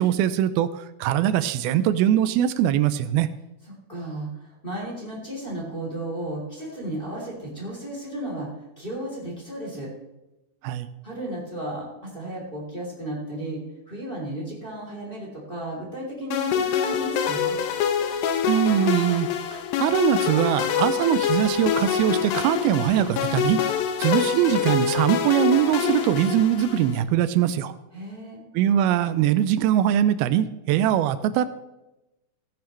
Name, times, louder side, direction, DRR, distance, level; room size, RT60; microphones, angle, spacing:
voice 1, 0.0-3.3 10.6-10.9 18.5-23.6 24.0-27.7 28.6-31.5, right 11 dB, 85° right, 13 dB, 2.5 m, -22 dB
voice 2, 3.9-9.9 11.0-17.6 27.9-28.4, right 1 dB, 15° left, -4 dB, 3.2 m, -34 dB
sound 1, 16.3-27.0, left 8 dB, 75° left, 2.6 m, -25 dB
15.5 x 10.5 x 3.2 m, 0.97 s
omnidirectional pair, 4.3 m